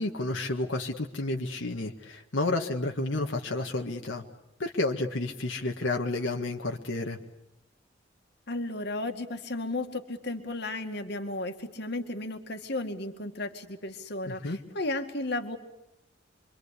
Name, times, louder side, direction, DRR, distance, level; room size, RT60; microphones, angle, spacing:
voice 1, 0.0-4.2 4.6-7.2 14.3-14.6, left 2 dB, 85° left, 2 dB, 1.8 m, -31 dB
voice 2, 8.5-15.6, left 2 dB, 60° left, 6 dB, 2.1 m, -34 dB
27.0 x 24.5 x 8.5 m, 0.85 s
head